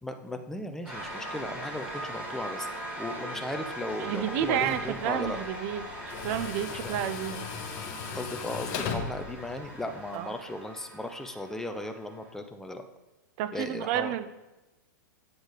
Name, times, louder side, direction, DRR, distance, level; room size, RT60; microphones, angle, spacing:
voice 1, 0.0-2.7 3.0-5.4 6.7-6.9 8.1-12.9 13.5-14.1, left 1 dB, 5° left, 6 dB, 0.6 m, -36 dB
sound 1, 0.8-12.3, right 1 dB, 15° right, 2.2 m, -40 dB
Tools, 3.9-10.2, left 6 dB, 45° left, 0.9 m, -39 dB
voice 2, 4.0-7.5 10.1-10.3 13.4-14.3, right 10 dB, 45° right, 11 dB, 0.6 m, -31 dB
8.0 x 4.2 x 5.1 m, 1.0 s
hypercardioid pair, 120°, 11 cm